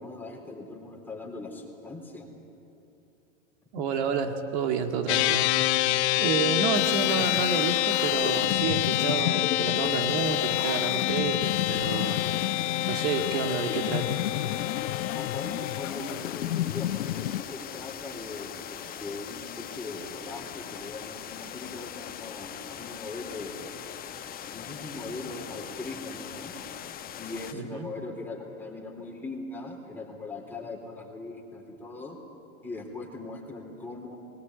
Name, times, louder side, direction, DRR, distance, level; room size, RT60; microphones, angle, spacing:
voice 1, 0.0-2.3 15.1-23.7 24.5-26.6 27.2-32.2 32.6-34.2, left 2 dB, 5° left, -1 dB, 3.8 m, -40 dB
voice 2, 3.7-5.5 6.2-12.2 12.9-14.2 27.5-27.9, right 5 dB, 55° right, 6 dB, 2.2 m, -30 dB
sound 1, 5.1-15.9, left 15 dB, 60° left, 0.9 m, -27 dB
sound 2, 6.7-17.4, left 14 dB, 90° left, 0.5 m, -33 dB
sound 3, 11.4-27.5, left 9 dB, 25° left, 1.0 m, -41 dB
19.5 x 18.5 x 9.6 m, 3.0 s
hypercardioid pair, 115°, 37 cm